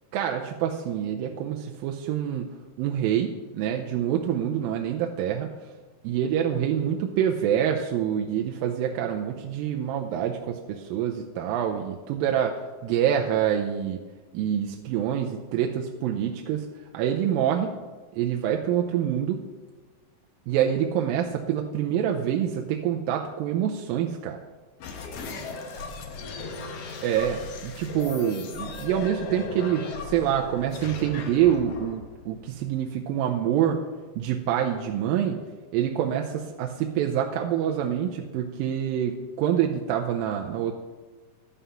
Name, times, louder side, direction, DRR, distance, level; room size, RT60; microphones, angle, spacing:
voice 1, 0.1-2.5 2.8-5.5 6.0-14.0 14.3-16.7 16.9-17.7 18.1-19.4 20.5-24.4 27.0-33.8 34.2-35.4 35.7-40.7, right 9 dB, 85° right, 2 dB, 2.3 m, -26 dB
sound 1, 24.8-33.0, left 4 dB, 75° left, 1.4 m, -37 dB
11.5 x 5.6 x 6.9 m, 1.3 s
omnidirectional pair, 4.2 m